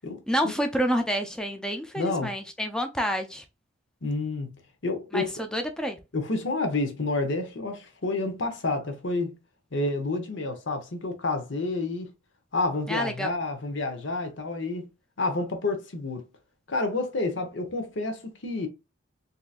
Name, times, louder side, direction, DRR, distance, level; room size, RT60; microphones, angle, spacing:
voice 1, 0.3-3.4 5.1-6.0 12.9-13.3, equal, 5° left, 0.5 m, -28 dB
voice 2, 2.0-2.3 4.0-5.4 6.1-9.4 9.7-12.1 12.5-14.9 15.2-16.3 16.7-18.7, left 2 dB, 65° left, 0.9 m, -29 dB
3.8 x 2.8 x 2.4 m
head